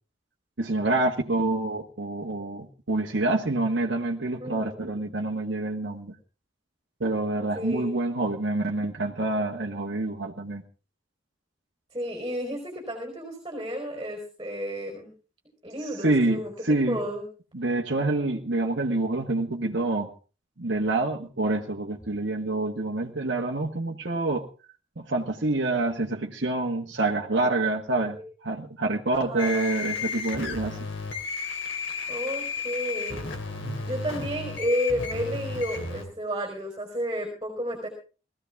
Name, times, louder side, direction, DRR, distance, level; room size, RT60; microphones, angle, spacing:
voice 1, 0.6-6.1 7.0-10.6 16.0-17.0 17.5-20.1 20.6-24.5 25.0-30.9 33.6-33.8, right 2 dB, 65° right, 0 dB, 1.7 m, -27 dB
voice 2, 4.4-5.0 7.5-8.0 11.9-15.1 15.6-17.3 28.1-28.2 28.8-29.7 32.1-33.3 33.9-37.9, equal, 20° right, 2 dB, 4.6 m, -32 dB
sound 1, 29.4-36.0, left 4 dB, 85° left, 3.3 m, -33 dB
20.0 x 15.5 x 3.6 m, 0.36 s
head